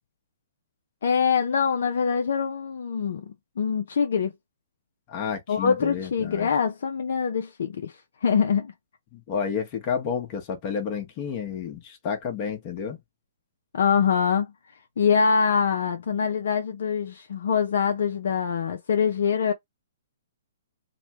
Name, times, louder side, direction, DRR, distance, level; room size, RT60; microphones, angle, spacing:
voice 1, 1.0-4.3 5.5-7.9 8.2-8.7 13.7-14.5 15.0-19.5, left 6 dB, 65° left, 0.5 m, -24 dB
voice 2, 5.1-6.5 9.1-13.0, left 7 dB, 35° left, 1.0 m, -30 dB
3.1 x 2.2 x 2.9 m
hypercardioid pair, 140°, 0 cm